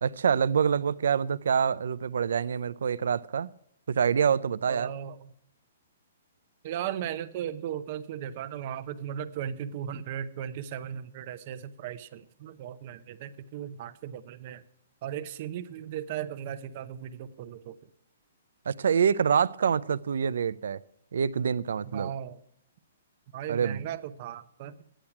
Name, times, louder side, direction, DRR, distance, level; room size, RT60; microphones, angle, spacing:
voice 1, 0.0-3.5 3.9-4.9 18.7-20.8 21.1-22.1 23.5-23.8, right 7 dB, 75° right, 0.5 m, -26 dB
voice 2, 4.7-5.3 6.6-14.6 15.0-17.8 21.9-22.4 23.3-24.7, right 9 dB, 35° right, 0.7 m, -37 dB
12.5 x 10.0 x 5.9 m
hypercardioid pair, 170°, 0 cm